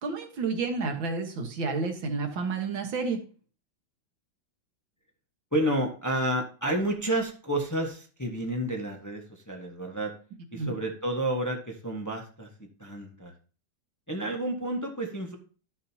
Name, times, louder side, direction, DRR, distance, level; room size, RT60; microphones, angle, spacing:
voice 1, 0.0-3.2 10.5-10.8, right 4 dB, 80° right, 4 dB, 2.1 m, -30 dB
voice 2, 5.5-10.1 10.5-12.5 12.8-13.3 14.1-15.4, right 1 dB, 10° left, 1 dB, 1.1 m, -30 dB
13.0 x 6.3 x 2.8 m, 0.39 s
omnidirectional pair, 2.1 m